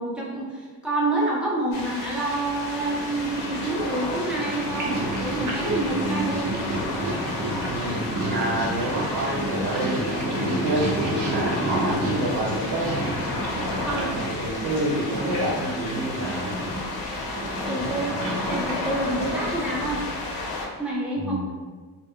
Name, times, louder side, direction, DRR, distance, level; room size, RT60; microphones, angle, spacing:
voice 1, 0.0-6.7 13.8-14.1 17.7-18.2 18.5-20.1 20.8-21.5, right 2 dB, 5° right, -5 dB, 0.5 m, -28 dB
sound 1, 1.7-20.7, left 2 dB, 65° left, 0.7 m, -32 dB
Purr, 2.6-20.2, right 1 dB, 50° right, 0.6 m, -31 dB
voice 2, 7.7-13.0 13.9-16.6 21.2-21.5, right 1 dB, 85° right, -6 dB, 1.0 m, -28 dB
2.3 x 2.0 x 3.5 m, 1.4 s
cardioid pair, 140°, 40 cm